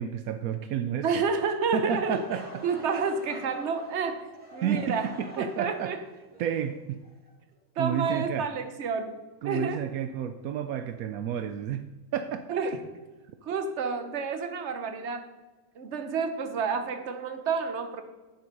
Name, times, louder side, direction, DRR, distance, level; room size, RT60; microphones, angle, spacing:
voice 1, 0.0-1.2 1.7-2.6 4.6-5.9 6.4-7.0 7.8-8.5 9.4-12.6, right 8 dB, 75° right, 9 dB, 0.8 m, -31 dB
voice 2, 1.0-2.2 2.6-4.2 4.5-5.1 5.4-6.0 7.8-9.8 12.5-12.8 13.4-15.3 15.7-18.0, right 5 dB, 45° right, 7 dB, 1.0 m, -30 dB
Laughter / Crowd, 1.6-7.6, equal, 5° right, 2.3 m, -47 dB
10.5 x 7.6 x 5.3 m, 1.2 s
omnidirectional pair, 2.1 m